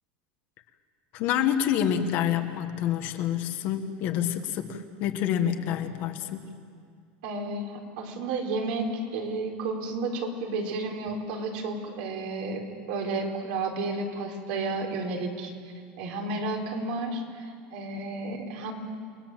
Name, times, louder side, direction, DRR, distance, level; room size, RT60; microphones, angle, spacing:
voice 1, 1.1-6.4, left 10 dB, 40° left, 7 dB, 1.4 m, -27 dB
voice 2, 7.2-12.6 12.9-15.5 16.0-18.7, right 3 dB, 65° right, 1 dB, 4.2 m, -32 dB
29.5 x 20.5 x 7.4 m, 2.2 s
cardioid pair, 175°, 5 cm